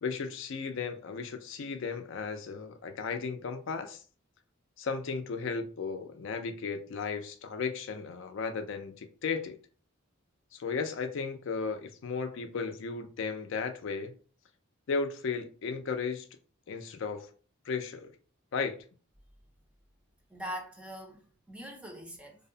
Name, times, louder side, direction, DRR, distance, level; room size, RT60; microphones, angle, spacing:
voice 1, 0.0-4.0 4.8-9.6 10.5-14.1 14.9-16.2 16.7-17.3 17.7-18.1 18.5-18.8, left 5 dB, 65° left, 0.4 m, -35 dB
voice 2, 20.3-22.4, equal, 5° right, 0.4 m, -42 dB
2.6 x 2.0 x 2.6 m
head